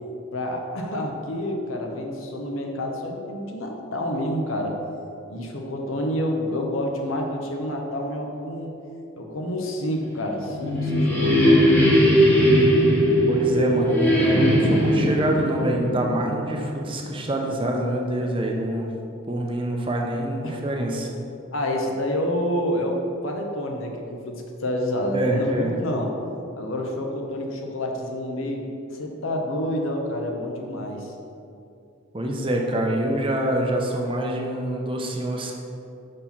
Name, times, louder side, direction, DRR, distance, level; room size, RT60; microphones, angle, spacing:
voice 1, 0.3-4.8 5.3-8.7 9.2-11.9 20.4-20.6 21.5-26.1 26.6-28.6 28.9-31.1, left 1 dB, 75° left, 1 dB, 1.0 m, -28 dB
sound 1, 10.2-16.9, equal, 10° left, 1.0 m, -19 dB
voice 2, 13.3-18.9 19.3-21.1 25.1-25.7 32.1-35.5, right 1 dB, 25° right, 1 dB, 0.7 m, -26 dB
6.5 x 4.3 x 5.8 m, 2.7 s
head